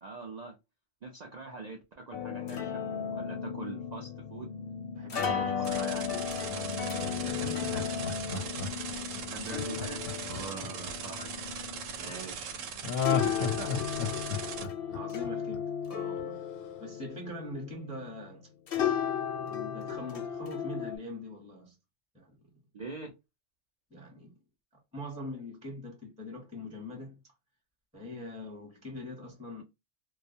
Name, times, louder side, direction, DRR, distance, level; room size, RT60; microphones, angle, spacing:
voice 1, 0.0-0.6 1.0-2.8 3.1-4.5 5.1-6.1 7.7-8.0 9.3-11.3 11.9-12.6 13.1-13.7 22.7-23.1, right 3 dB, 60° right, 0.4 m, -43 dB
sound 1, 2.1-18.3 18.7-21.0, left 8 dB, 60° left, 0.7 m, -35 dB
voice 2, 4.9-6.0 6.5-6.8 7.2-7.9 10.3-10.8 12.0-12.2 14.9-16.4 16.8-18.5 19.4-21.8 22.1-22.6 23.9-24.3 24.7-27.2 27.9-29.6, left 1 dB, 5° right, 0.8 m, -43 dB
sound 2, 5.7-14.6, right 7 dB, 80° right, 0.9 m, -40 dB
Laughter, 7.0-11.3 12.8-15.8 16.2-16.3, left 7 dB, 80° left, 1.0 m, -34 dB
2.3 x 2.1 x 2.6 m
omnidirectional pair, 1.3 m